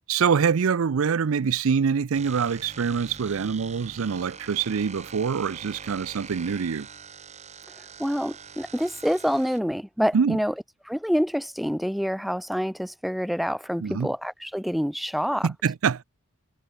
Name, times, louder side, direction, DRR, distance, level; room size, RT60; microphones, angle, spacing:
voice 1, 0.1-6.9 10.1-10.4 13.8-14.1 15.4-16.0, right 6 dB, 75° right, 0.5 m, -25 dB
sound 1, 2.1-9.6, right 5 dB, 30° right, 3.3 m, -43 dB
voice 2, 7.8-10.5 10.8-15.5, equal, ahead, 0.4 m, -27 dB
head